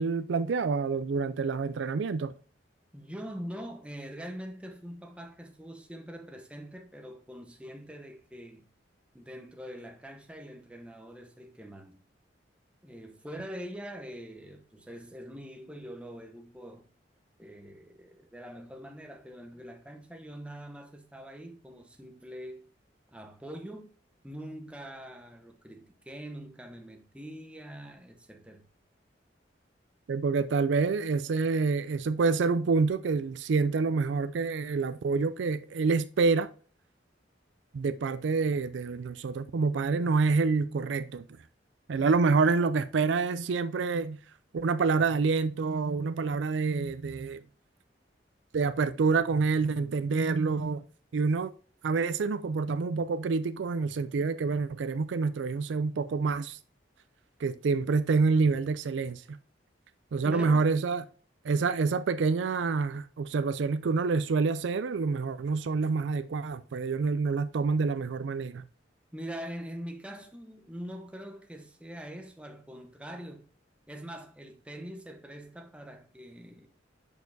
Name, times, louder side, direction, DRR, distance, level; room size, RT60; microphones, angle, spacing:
voice 1, 0.0-2.3 30.1-36.5 37.7-41.2 41.9-44.2 44.5-47.4 48.5-50.8 51.1-51.5 51.8-56.6 57.4-59.4 60.1-61.0 61.4-68.6, right 4 dB, 70° right, 0.4 m, -27 dB
voice 2, 2.9-8.6 9.1-12.0 12.8-16.9 17.4-22.7 23.1-23.9 24.2-28.6 60.2-60.7 69.1-73.5 73.9-76.7, equal, 5° right, 0.8 m, -43 dB
6.8 x 6.4 x 2.7 m
head